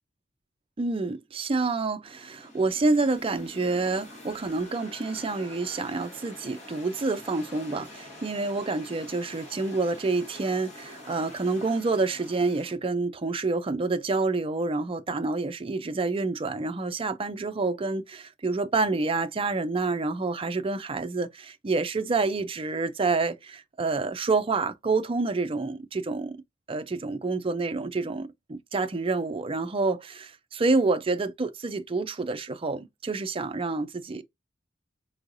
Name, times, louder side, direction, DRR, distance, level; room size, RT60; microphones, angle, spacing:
voice 1, 0.8-26.4 26.7-34.2, right 3 dB, 30° right, 0.5 m, -28 dB
sound 1, 2.1-12.8, left 2 dB, 35° left, 1.6 m, -46 dB
4.5 x 3.1 x 2.5 m
head